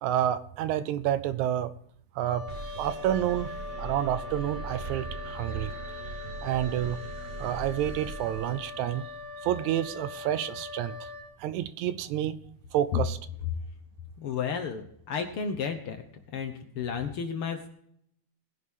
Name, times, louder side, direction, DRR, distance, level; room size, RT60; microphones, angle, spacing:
voice 1, 0.0-1.7 2.2-2.4 2.8-5.7 6.4-7.0 7.4-9.1 9.4-11.1 11.4-12.3 12.7-13.2, right 11 dB, 80° right, 13 dB, 1.9 m, -29 dB
Wind instrument woodwind instrument, 2.2-11.3, left 3 dB, 10° left, 5.2 m, -41 dB
sound 1, 2.5-9.1, right 3 dB, 60° right, 3.3 m, -41 dB
voice 2, 14.2-16.0 16.3-17.7, left 7 dB, 70° left, 6 dB, 1.3 m, -32 dB
19.5 x 10.5 x 3.6 m, 0.71 s
omnidirectional pair, 3.6 m